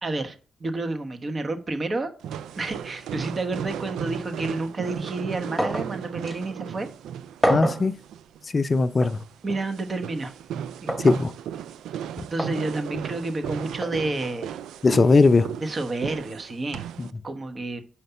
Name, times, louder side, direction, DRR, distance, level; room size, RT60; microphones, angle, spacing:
voice 1, 0.0-2.1 2.5-6.9 9.4-10.3 10.8-10.9 12.3-14.6 15.6-16.9 17.2-17.8, right 2 dB, 45° right, 1.1 m, -30 dB
sound 1, 2.2-17.1, right 9 dB, 85° right, 0.3 m, -35 dB
sound 2, 5.6-5.9 6.3-6.4 7.4-7.9 9.0-9.2 10.9-11.2 12.4-12.6 13.8-14.0, equal, 10° right, 1.3 m, -26 dB
voice 2, 7.5-7.9 8.5-9.2 11.0-11.3 14.8-15.5 17.0-17.1, left 3 dB, 40° left, 0.5 m, -19 dB
5.8 x 5.1 x 5.6 m
supercardioid pair, 50°, 0 cm